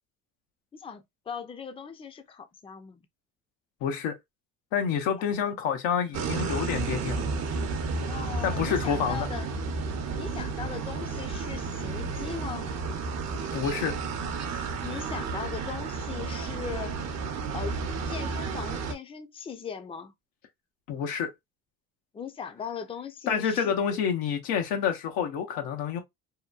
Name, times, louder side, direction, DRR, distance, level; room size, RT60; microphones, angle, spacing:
voice 1, 0.7-3.1 5.2-5.3 8.1-9.5 10.1-12.7 14.8-17.0 17.5-17.8 18.1-20.1 22.1-23.7, left 6 dB, 15° left, 0.4 m, -39 dB
voice 2, 3.8-4.1 4.7-7.3 8.4-9.3 13.5-13.9 20.9-21.3 23.3-26.0, left 7 dB, 85° left, 0.7 m, -28 dB
sound 1, 6.1-18.9, right 4 dB, 50° right, 0.7 m, -32 dB
2.8 x 2.1 x 2.3 m
supercardioid pair, 80°, 34 cm